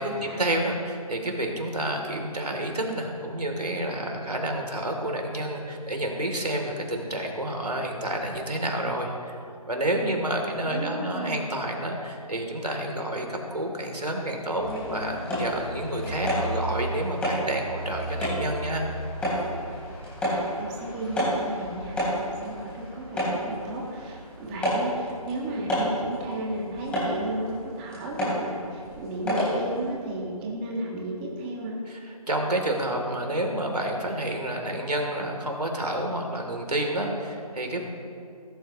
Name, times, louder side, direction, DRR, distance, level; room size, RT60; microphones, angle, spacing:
voice 1, 0.0-9.4 9.7-18.8 31.9-37.9, right 1 dB, 90° right, 2 dB, 2.9 m, -29 dB
voice 2, 10.0-11.4 20.3-31.8, right 1 dB, 15° right, -2 dB, 1.5 m, -34 dB
sound 1, 14.6-29.9, equal, 5° left, 3.6 m, -31 dB
20.0 x 12.0 x 3.0 m, 2.4 s
figure-of-eight pair, 155°, 20 cm